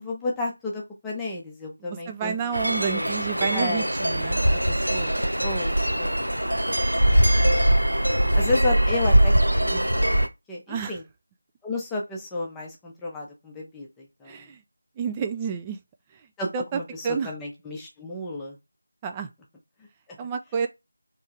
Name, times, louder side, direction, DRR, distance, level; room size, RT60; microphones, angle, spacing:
voice 1, 0.0-2.4 2.6-3.1 3.5-3.9 5.4-6.2 8.3-9.3 9.6-11.0 11.6-14.4 16.4-18.6 20.1-20.2, left 2 dB, 5° left, 0.7 m, -32 dB
voice 2, 1.8-5.2 10.7-11.0 14.3-14.6 15.0-15.8 16.1-16.3 16.5-17.3 19.0-19.3 20.2-20.7, right 6 dB, 15° right, 0.3 m, -31 dB
sound 1, 2.5-10.3, right 1 dB, 80° right, 0.7 m, -22 dB
3.6 x 3.1 x 4.5 m
figure-of-eight pair, 165°, 0 cm